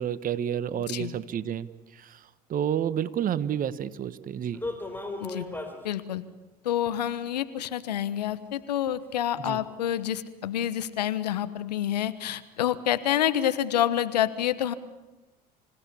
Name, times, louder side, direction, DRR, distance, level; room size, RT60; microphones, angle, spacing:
voice 1, 0.0-1.7 1.9-2.2 2.5-4.6 9.4-9.6, right 9 dB, 45° right, 16 dB, 1.2 m, -30 dB
voice 2, 0.8-1.1 5.2-5.5 5.8-6.2 6.6-14.7, left 11 dB, 85° left, 14 dB, 1.2 m, -28 dB
sound 1, 4.5-5.8 6.8-6.9 7.6-7.7 8.2-8.3 8.9-9.0 9.5-9.7 10.0-10.1, left 2 dB, 10° left, 4.8 m, -36 dB
26.5 x 17.0 x 8.5 m, 1.1 s
hypercardioid pair, 70°, 20 cm